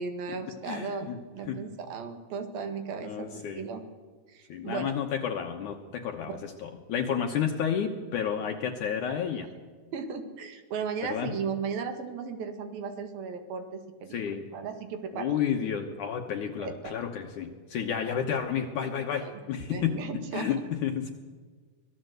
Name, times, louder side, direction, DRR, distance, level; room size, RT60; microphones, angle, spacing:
voice 1, 0.0-3.8 4.3-4.9 6.2-6.4 9.9-15.4 16.6-16.9 19.2-19.3 19.7-20.5, right 5 dB, 75° right, 7 dB, 3.6 m, -36 dB
voice 2, 0.7-1.2 1.5-1.6 3.0-3.7 4.5-9.5 11.0-11.3 14.1-14.5 15.1-21.1, left 8 dB, 65° left, 3 dB, 2.4 m, -31 dB
24.5 x 17.5 x 8.0 m, 1.5 s
omnidirectional pair, 4.2 m